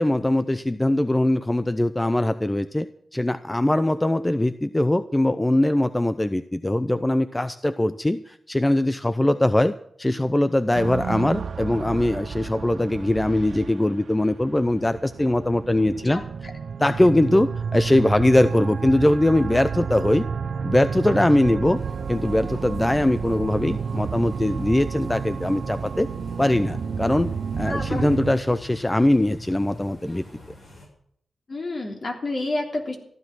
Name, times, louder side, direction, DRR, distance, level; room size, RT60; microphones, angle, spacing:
voice 1, 0.0-2.9 3.1-16.2 16.8-20.3 20.6-21.8 22.1-26.1 26.4-30.2, left 1 dB, 15° left, 12 dB, 0.6 m, -21 dB
sound 1, 10.7-28.3, right 6 dB, 70° right, 0.7 m, -31 dB
sound 2, 21.7-30.9, left 2 dB, 70° left, 7.0 m, -45 dB
voice 2, 27.6-28.0 31.5-33.0, left 2 dB, 50° left, 2 dB, 3.3 m, -29 dB
15.0 x 12.0 x 6.1 m, 0.67 s
wide cardioid pair, 100°, 0 cm